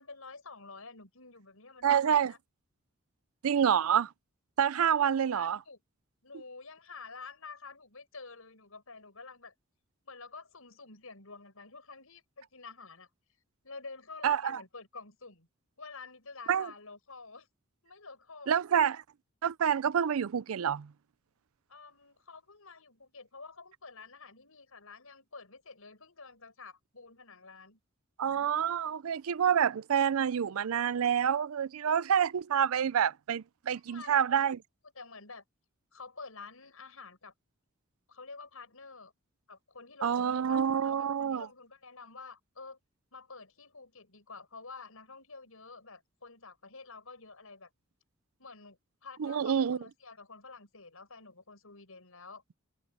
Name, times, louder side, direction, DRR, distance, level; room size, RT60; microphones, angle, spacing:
voice 1, 0.0-2.4 4.7-5.8 6.2-9.5 10.0-13.1 13.6-15.5 15.8-17.5 17.8-18.6 21.7-27.8 33.9-34.5 35.0-35.4 35.9-37.3 38.1-39.1 39.5-42.8 43.1-47.7 48.4-52.4, left 4 dB, 85° left, 5.8 m, -49 dB
voice 2, 1.8-2.3 3.4-4.1 4.6-5.6 14.2-14.6 16.5-16.7 18.5-19.0 19.4-20.9 28.2-34.6 40.0-41.5 49.2-49.8, right 8 dB, 85° right, 0.4 m, -27 dB
head